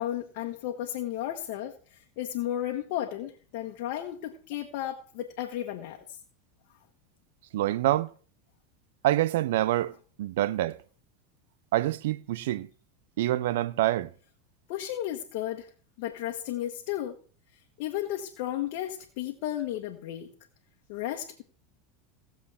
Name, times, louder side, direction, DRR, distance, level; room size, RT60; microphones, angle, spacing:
voice 1, 0.0-6.0 14.7-15.7 16.0-17.2 17.8-20.3 20.9-21.4, left 12 dB, 65° left, 1.4 m, -34 dB
voice 2, 7.5-8.1 9.0-10.8 11.7-12.7 13.2-14.1, right 15 dB, 75° right, 0.6 m, -26 dB
18.0 x 7.3 x 3.6 m
hypercardioid pair, 95°, 0 cm